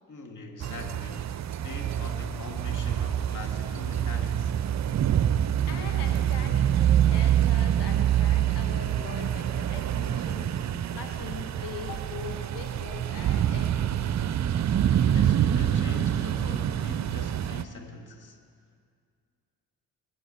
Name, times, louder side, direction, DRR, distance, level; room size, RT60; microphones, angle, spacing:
voice 1, 0.1-4.5 15.0-18.4, left 3 dB, 45° left, 3 dB, 2.1 m, -42 dB
sound 1, 0.6-17.6, right 10 dB, 40° right, 0.6 m, -26 dB
voice 2, 5.7-10.6 10.9-14.1, left 7 dB, 65° left, 5 dB, 1.4 m, -42 dB
21.5 x 9.2 x 4.4 m, 2.2 s
hypercardioid pair, 45°, 43 cm